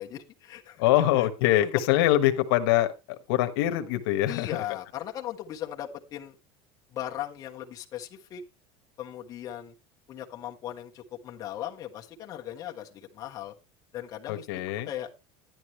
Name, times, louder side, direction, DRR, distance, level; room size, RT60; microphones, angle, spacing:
voice 1, 0.0-0.8 1.1-1.3 1.6-1.7 4.3-6.4 6.9-8.4 9.0-9.7 10.1-13.5 13.9-14.5 14.9-15.1, left 11 dB, 30° left, 0 dB, 1.4 m, -38 dB
voice 2, 0.8-4.6 14.3-14.9, left 14 dB, 80° left, 8 dB, 1.3 m, -24 dB
11.0 x 11.0 x 3.2 m, 0.26 s
cardioid pair, 170°, 12 cm